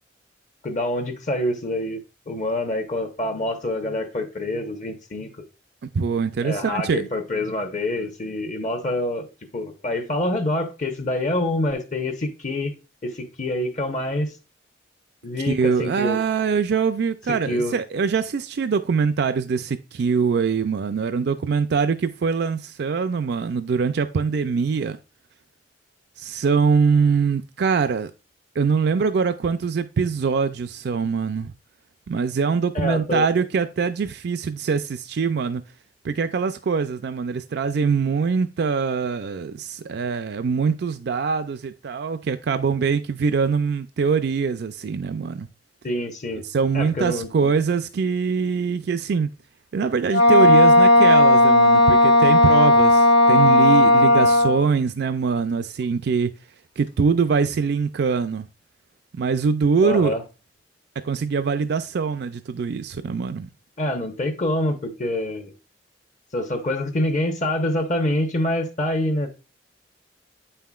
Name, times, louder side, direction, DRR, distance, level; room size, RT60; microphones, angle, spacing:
voice 1, 0.6-5.3 6.4-12.7 13.0-14.3 15.2-16.2 17.3-17.7 32.7-33.3 45.8-46.5 46.7-47.5 59.8-60.2 63.8-65.5 66.3-69.4, left 1 dB, 45° left, 1.0 m, -26 dB
voice 2, 5.9-7.0 15.4-25.0 26.2-28.1 28.6-31.5 32.1-35.6 36.0-45.5 46.4-49.3 49.7-56.3 56.8-58.5 59.1-60.2 61.0-63.5, right 5 dB, 65° right, 0.4 m, -23 dB
Wind instrument woodwind instrument, 50.1-54.6, left 1 dB, 70° left, 0.9 m, -14 dB
8.1 x 5.6 x 2.3 m
head